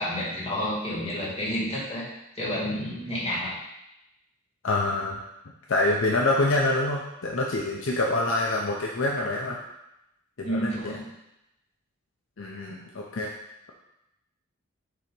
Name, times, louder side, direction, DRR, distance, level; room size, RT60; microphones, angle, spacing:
voice 1, 0.0-2.1 2.4-3.6 10.4-11.1, equal, 30° left, -7 dB, 1.9 m, -30 dB
voice 2, 4.6-5.2 5.7-9.6 10.4-10.9 12.4-13.3, left 2 dB, 65° left, -1 dB, 0.6 m, -26 dB
6.9 x 2.9 x 5.2 m, 0.87 s
head